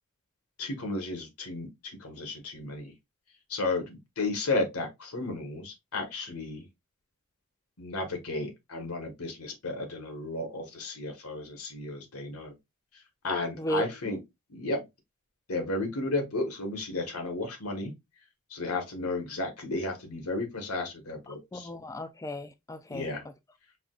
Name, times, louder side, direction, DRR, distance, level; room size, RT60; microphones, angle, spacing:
voice 1, 0.6-1.7 2.0-2.9 3.5-6.7 7.8-12.5 13.2-14.2 14.5-14.8 15.5-17.9 18.5-21.7 22.9-23.2, left 2 dB, 85° left, 1.2 m, -33 dB
voice 2, 13.6-14.2 21.3-23.1, equal, 15° left, 0.3 m, -35 dB
4.8 x 2.2 x 2.3 m
head